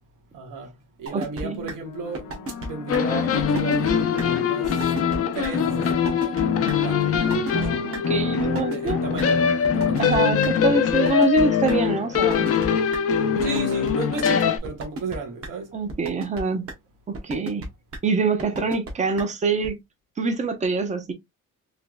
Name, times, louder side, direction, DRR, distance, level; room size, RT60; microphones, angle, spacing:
voice 1, 0.3-0.7 1.0-2.3 2.6-4.9 5.3-7.7 8.6-10.0 13.4-15.8, right 4 dB, 75° right, 1.2 m, -34 dB
voice 2, 1.1-1.7 7.5-9.0 10.0-12.5 15.7-16.7 17.1-17.7 18.0-19.8 20.2-21.1, right 4 dB, 20° right, 0.6 m, -25 dB
sound 1, 1.1-1.4 1.7-1.8 2.1-2.7 2.9-3.0 3.4-3.9 4.2-4.3 4.6-5.2 5.4-5.5 5.9-6.4 6.7-6.8 7.1-7.7 7.9-8.0 8.4-9.2 9.6-10.5 10.9-11.7 12.1-12.7 12.9-13.0 13.4-13.9 14.2-14.3 14.6-15.2 15.4-15.5 15.9-16.4 16.7-16.8 17.1-17.7 17.9-18.0 18.4-18.9 19.2-19.3 19.6-19.7, right 2 dB, 45° right, 1.1 m, -33 dB
sound 2, 1.8-10.4 11.3-11.7, left 6 dB, 85° left, 0.7 m, -39 dB
sound 3, 2.9-14.6, left 7 dB, 45° left, 0.6 m, -22 dB
3.3 x 3.0 x 2.2 m
cardioid pair, 170°, 32 cm